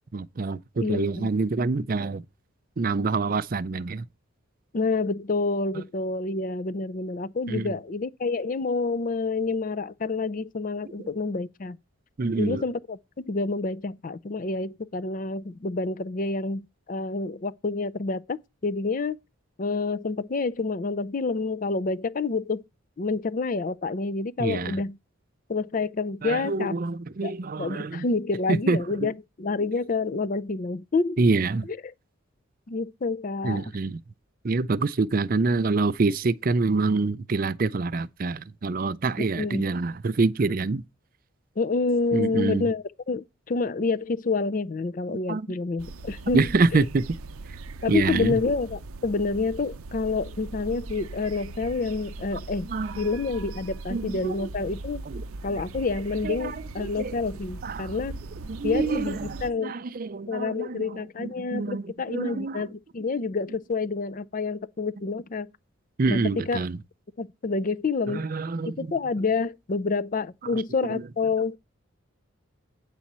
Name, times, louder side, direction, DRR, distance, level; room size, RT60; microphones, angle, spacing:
voice 1, 0.1-2.2 2.8-4.0 5.7-5.8 7.5-7.7 11.0-11.1 12.2-12.6 24.4-24.8 26.2-28.0 28.5-29.1 31.2-31.7 33.4-34.0 34.4-40.8 42.1-42.7 45.1-45.5 46.3-47.0 47.9-48.4 52.7-53.1 53.9-54.5 55.1-55.2 56.2-57.1 57.6-58.0 58.5-62.6 66.0-66.8 68.1-68.9 70.9-71.0, right 3 dB, 40° right, 0.4 m, -26 dB
voice 2, 0.8-1.3 4.7-11.8 12.4-19.2 19.6-22.6 23.0-25.0 25.5-26.8 27.2-31.2 32.7-33.7 39.4-39.6 41.6-46.5 46.7-46.8 47.8-52.7 53.0-55.0 55.4-58.2 58.6-59.8 60.3-65.5 66.1-66.6 67.2-68.3 68.8-71.6, left 3 dB, 40° left, 0.4 m, -28 dB
sound 1, 45.8-59.5, right 3 dB, 90° right, 0.6 m, -39 dB
8.9 x 4.2 x 7.3 m
head